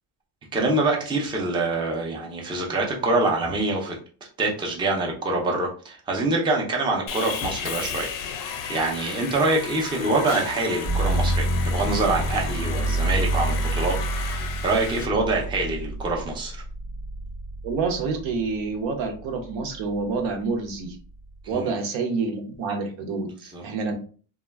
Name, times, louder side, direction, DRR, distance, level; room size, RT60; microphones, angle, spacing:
voice 1, 0.5-4.0 4.4-8.1 8.4-16.6 21.4-21.7 23.5-23.6, right 2 dB, 10° right, -1 dB, 0.4 m, -25 dB
Sawing, 7.1-15.1, left 7 dB, 50° left, 0.5 m, -34 dB
sound 1, 10.8-18.7 19.1-19.9, right 1 dB, 50° right, 0.7 m, -28 dB
voice 2, 17.6-21.0 21.5-23.9, right 4 dB, 80° right, 4 dB, 0.8 m, -28 dB
2.2 x 2.1 x 3.3 m, 0.40 s
cardioid pair, 145°, 45 cm